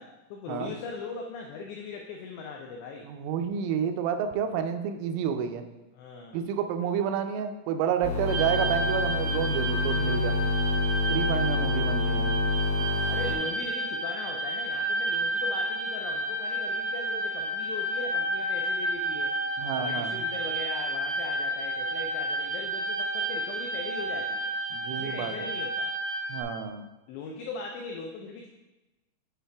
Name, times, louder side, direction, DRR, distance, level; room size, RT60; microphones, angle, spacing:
voice 1, 0.0-3.1 5.9-6.4 12.9-19.3 19.7-24.5 24.9-25.9 27.1-28.5, left 4 dB, 90° left, 1 dB, 2.4 m, -39 dB
voice 2, 3.0-5.6 6.3-10.4 11.1-12.3 19.6-20.2 24.7-25.5 26.3-26.8, right 8 dB, 90° right, 7 dB, 3.2 m, -30 dB
sound 1, 8.0-13.3, left 3 dB, 70° left, 3.1 m, -28 dB
sound 2, 8.3-26.4, right 1 dB, 65° right, 1.4 m, -31 dB
11.0 x 4.0 x 3.4 m, 1.0 s
omnidirectional pair, 5.6 m